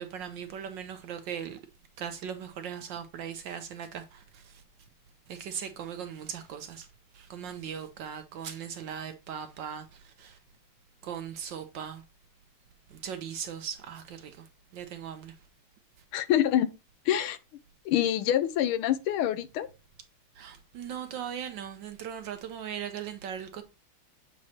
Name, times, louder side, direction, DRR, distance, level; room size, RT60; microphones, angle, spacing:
voice 1, 0.0-1.6 2.0-4.0 5.3-6.9 7.3-9.8 10.2-10.3 11.0-12.0 13.0-14.3 14.7-15.3 20.4-23.6, right 8 dB, 70° right, 1.2 m, -38 dB
voice 2, 16.1-16.7 17.1-17.4 17.8-19.7, left 11 dB, 80° left, 1.4 m, -26 dB
7.4 x 3.1 x 4.1 m
omnidirectional pair, 2.4 m